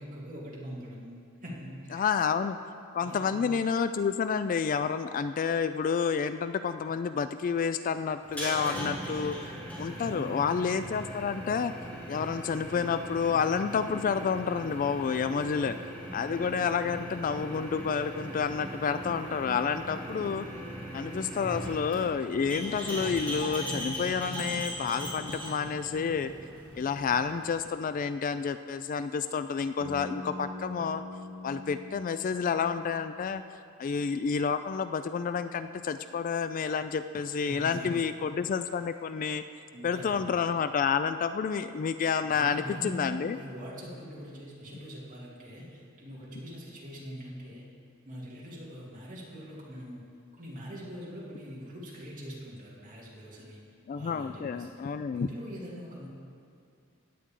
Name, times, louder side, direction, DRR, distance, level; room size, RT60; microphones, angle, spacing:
voice 1, 0.0-2.1 3.0-3.4 9.8-10.5 37.3-38.1 39.7-40.5 42.2-47.6 48.0-50.0 50.4-53.6 53.9-54.8 55.1-56.1, equal, 40° right, -5 dB, 2.5 m, -43 dB
voice 2, 1.9-2.6 2.9-9.4 9.8-11.7 12.1-15.8 16.1-20.5 20.9-26.3 26.7-31.0 31.4-33.4 33.8-39.4 39.8-43.4 53.9-55.3, left 6 dB, 40° left, 11 dB, 0.3 m, -29 dB
sound 1, 8.2-27.6, equal, 5° left, 2.6 m, -39 dB
Bass guitar, 29.8-33.9, left 2 dB, 75° right, 1.7 m, -44 dB
16.0 x 9.5 x 3.7 m, 2.3 s
head